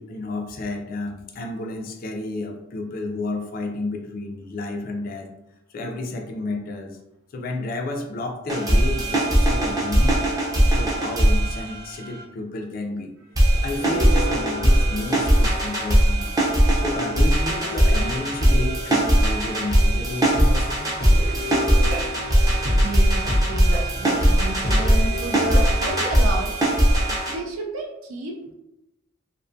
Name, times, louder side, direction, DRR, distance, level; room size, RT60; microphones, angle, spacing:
voice 1, 0.0-5.3 5.7-7.0 7.3-10.2 10.5-13.1 13.5-20.9, left 2 dB, 45° left, 4 dB, 0.3 m, -31 dB
sound 1, 8.5-12.2 13.4-27.3, right 1 dB, 20° right, 0.5 m, -20 dB
sound 2, 13.8-16.5 17.4-20.4 20.7-20.8 21.0-26.0, equal, 50° right, 0.8 m, -29 dB
voice 2, 22.8-26.6 27.3-28.5, right 1 dB, 85° right, 0 dB, 0.4 m, -31 dB
2.5 x 2.2 x 2.5 m, 0.90 s
head